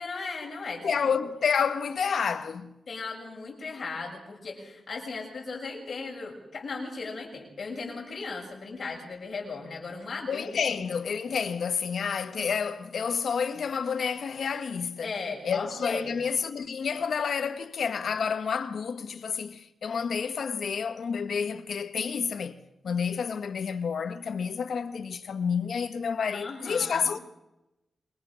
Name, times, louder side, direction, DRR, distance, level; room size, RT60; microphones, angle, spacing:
voice 1, 0.0-1.1 2.9-10.8 15.0-16.1 26.3-27.1, left 4 dB, 40° left, 7.1 m, -37 dB
voice 2, 0.8-2.7 10.3-15.1 15.4-22.6 22.8-27.2, left 6 dB, 60° left, 1.5 m, -29 dB
27.0 x 23.5 x 6.5 m
wide cardioid pair, 160°, 0 cm